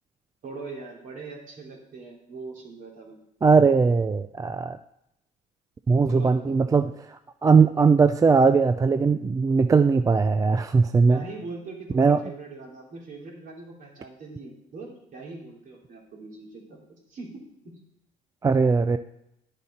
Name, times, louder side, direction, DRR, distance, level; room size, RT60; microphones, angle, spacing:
voice 1, 0.4-3.2 5.9-6.8 11.1-17.8, right 3 dB, 55° right, -1 dB, 3.0 m, -41 dB
voice 2, 3.4-4.8 5.9-11.2 11.9-12.2 18.4-19.0, right 5 dB, 20° right, 10 dB, 0.3 m, -20 dB
10.5 x 6.7 x 4.2 m, 0.80 s
cardioid pair, 110°, 17 cm